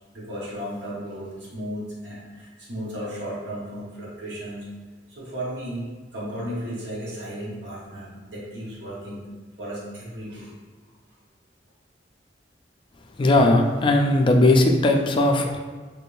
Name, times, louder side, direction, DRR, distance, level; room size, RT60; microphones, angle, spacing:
voice 1, 0.1-4.7 5.1-5.9 6.1-9.2 9.6-10.5, equal, 70° right, -6 dB, 1.1 m, -34 dB
voice 2, 13.2-15.6, left 2 dB, 30° left, 3 dB, 0.3 m, -18 dB
3.2 x 2.6 x 3.2 m, 1.4 s
head